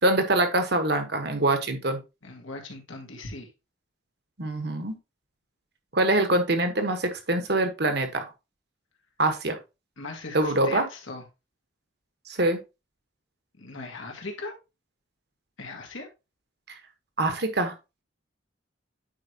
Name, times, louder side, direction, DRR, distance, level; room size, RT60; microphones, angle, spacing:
voice 1, 0.0-2.0 4.4-5.0 5.9-8.3 9.2-9.6 10.3-10.8 12.3-12.6 17.2-17.7, right 2 dB, 55° right, 7 dB, 1.3 m, -24 dB
voice 2, 2.2-3.5 10.0-11.2 13.6-14.5 15.6-16.1, left 3 dB, 85° left, 2 dB, 1.9 m, -39 dB
8.9 x 4.7 x 2.9 m, 0.26 s
head